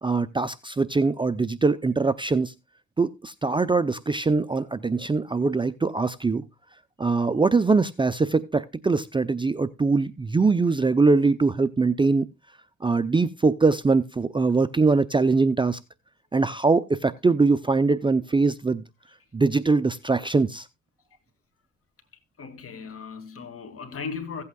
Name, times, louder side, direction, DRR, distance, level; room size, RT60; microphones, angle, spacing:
voice 1, 0.0-2.5 3.0-6.5 7.0-12.3 12.8-15.8 16.3-18.8 19.3-20.7, right 3 dB, 15° right, 0.5 m, -22 dB
voice 2, 22.4-24.4, left 5 dB, 50° left, 2.5 m, -37 dB
16.0 x 8.5 x 2.3 m
cardioid pair, 90°, 30 cm